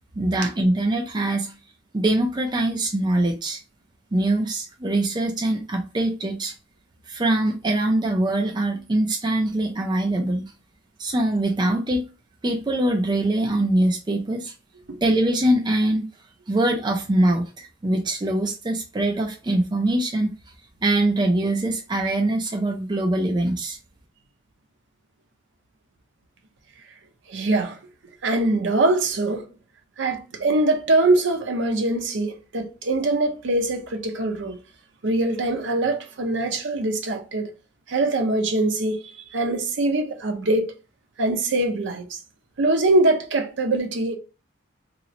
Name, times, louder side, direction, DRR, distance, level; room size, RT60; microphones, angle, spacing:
voice 1, 0.2-1.5 1.9-3.6 4.1-6.5 7.1-10.5 11.0-12.0 12.4-14.5 15.0-16.0 16.5-20.3 20.8-23.8, right 1 dB, 20° right, 0.4 m, -23 dB
voice 2, 27.3-27.8 28.2-29.5 30.0-34.6 35.0-37.5 37.9-39.0 39.3-40.7 41.2-42.2 42.6-44.2, right 2 dB, 60° right, 0.6 m, -23 dB
3.0 x 2.0 x 3.7 m
head